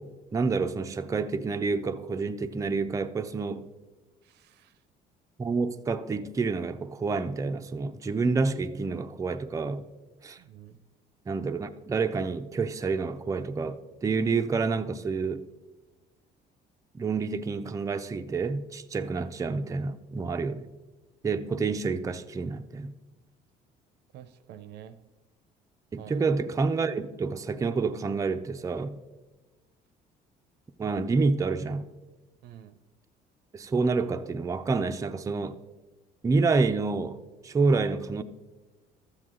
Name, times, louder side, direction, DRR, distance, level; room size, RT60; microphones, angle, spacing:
voice 1, 0.3-3.7 5.4-9.8 10.2-10.4 11.3-15.4 16.9-20.7 21.2-22.9 25.9-29.0 30.8-31.9 33.5-35.6 36.2-38.2, right 4 dB, 20° right, 0.5 m, -28 dB
voice 2, 4.3-4.7 10.4-10.8 24.1-25.0 26.0-26.2 32.4-32.8, right 10 dB, 80° right, 0.6 m, -48 dB
13.0 x 7.7 x 3.8 m
cardioid pair, 110°, 17 cm